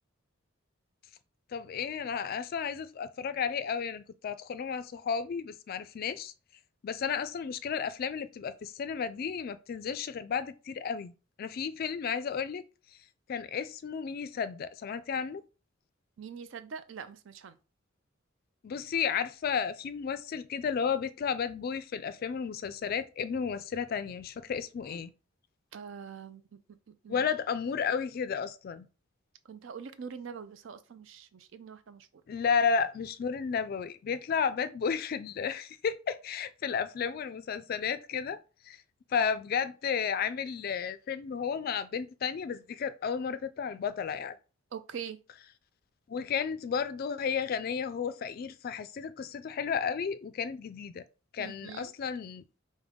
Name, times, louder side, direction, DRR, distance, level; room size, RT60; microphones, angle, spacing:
voice 1, 1.5-6.3 6.8-11.1 11.4-12.7 13.3-15.4 18.6-25.1 27.1-28.9 32.3-38.8 39.1-44.3 46.1-51.0 51.3-52.4, left 6 dB, 45° left, 0.3 m, -33 dB
voice 2, 16.2-17.6 25.7-27.3 29.4-32.1 44.7-45.2 51.4-51.9, right 6 dB, 65° right, 0.4 m, -44 dB
5.1 x 2.1 x 3.6 m
head